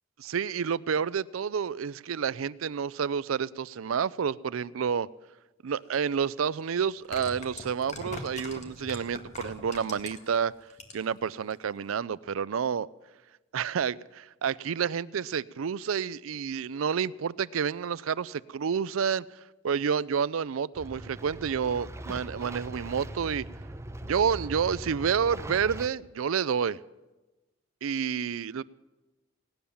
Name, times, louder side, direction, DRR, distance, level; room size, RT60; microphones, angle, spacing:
voice 1, 0.2-5.1 5.6-10.5 10.9-12.9 13.5-19.2 19.6-23.5 24.0-26.8 27.8-28.6, right 7 dB, 85° right, 0.4 m, -29 dB
sound 1, 5.9-6.0 6.9-10.3 10.7-11.2 11.5-11.6, left 2 dB, 35° left, 1.9 m, -41 dB
sound 2, 20.7-25.9, right 1 dB, 15° right, 0.7 m, -40 dB
17.5 x 10.0 x 7.0 m
head